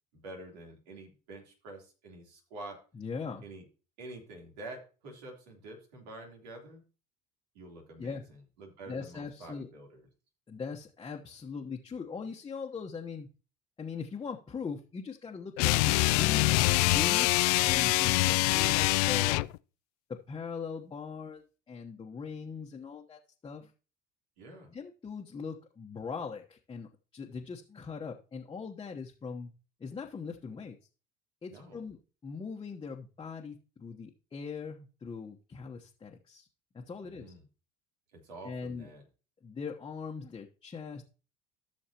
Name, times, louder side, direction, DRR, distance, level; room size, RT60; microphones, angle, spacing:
voice 1, 0.1-2.8 3.4-3.6 4.0-6.8 7.5-10.1 18.0-18.5 24.4-24.7 31.5-31.8 37.0-37.4 38.1-39.0, right 2 dB, 85° right, 1 dB, 3.5 m, -47 dB
voice 2, 2.9-3.4 8.0-8.2 8.9-9.7 10.5-13.3 13.8-19.4 20.1-23.7 24.7-29.5 29.8-30.8 31.4-36.5 36.7-37.3 38.4-38.9 39.4-41.0, left 5 dB, 25° left, 0 dB, 1.1 m, -41 dB
sound 1, 15.6-19.6, left 21 dB, 80° left, 0.4 m, -25 dB
15.0 x 6.4 x 2.9 m, 0.34 s
supercardioid pair, 95°, 20 cm